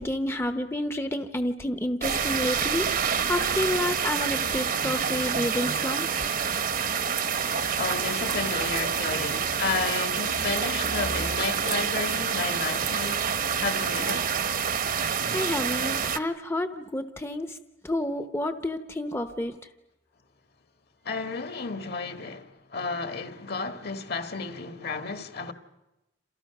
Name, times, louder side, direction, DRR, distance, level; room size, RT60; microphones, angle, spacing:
voice 1, 0.0-2.9 3.3-6.3 15.3-17.6 17.8-19.5, left 1 dB, 15° left, 0.9 m, -29 dB
sound 1, 2.0-16.2, right 7 dB, 50° right, 1.1 m, -27 dB
voice 2, 7.7-13.3 13.6-14.3 21.0-25.5, left 4 dB, 60° left, 1.9 m, -32 dB
29.0 x 27.5 x 6.0 m
head